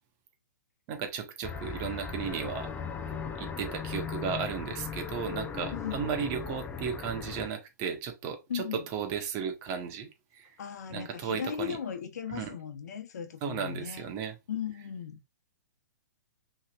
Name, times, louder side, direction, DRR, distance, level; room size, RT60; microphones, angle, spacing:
voice 1, 0.9-2.7 3.4-10.5 10.9-11.8 12.3-12.6 13.4-14.4, right 7 dB, 35° right, 1.2 m, -35 dB
sound 1, 1.4-7.5, left 6 dB, 15° left, 0.6 m, -38 dB
voice 2, 5.7-6.1 8.5-8.9 10.6-14.1 14.5-15.2, left 8 dB, 65° left, 1.1 m, -37 dB
5.3 x 3.3 x 2.5 m
hypercardioid pair, 125°, 9 cm